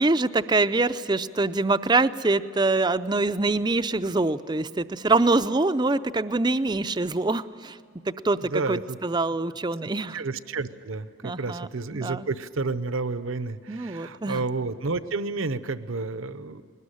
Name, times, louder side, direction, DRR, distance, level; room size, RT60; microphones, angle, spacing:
voice 1, 0.0-7.8 8.2-10.2 11.2-12.3 13.7-14.4, right 3 dB, 20° right, 12 dB, 0.5 m, -24 dB
voice 2, 8.4-9.0 10.1-16.6, right 3 dB, 70° right, 13 dB, 0.8 m, -30 dB
21.0 x 19.0 x 10.0 m, 2.4 s
head